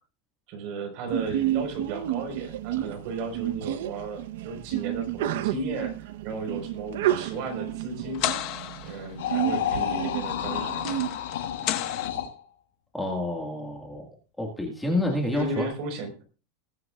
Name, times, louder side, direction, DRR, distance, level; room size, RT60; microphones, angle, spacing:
voice 1, 0.5-8.3 8.8-11.0 15.3-16.2, right 3 dB, 45° right, 5 dB, 4.7 m, -35 dB
Sneeze, 1.1-11.1, right 13 dB, 70° right, 1.0 m, -31 dB
sound 1, 7.0-12.1, left 13 dB, 40° left, 1.4 m, -35 dB
sound 2, 9.2-12.4 15.0-15.7, left 10 dB, 80° left, 5.6 m, -31 dB
voice 2, 12.9-14.1 14.4-15.7, left 1 dB, 5° left, 0 dB, 1.9 m, -28 dB
20.5 x 9.4 x 2.5 m, 0.35 s
supercardioid pair, 165°, 0 cm